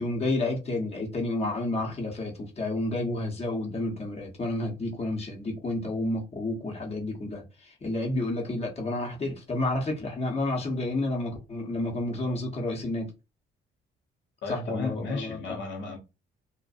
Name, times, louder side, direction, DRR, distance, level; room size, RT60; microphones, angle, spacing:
voice 1, 0.0-13.1 14.5-15.6, left 2 dB, 30° left, 0.9 m, -30 dB
voice 2, 14.4-16.0, left 3 dB, 70° left, 0.7 m, -34 dB
2.5 x 2.1 x 2.4 m
cardioid pair, 90°, 20 cm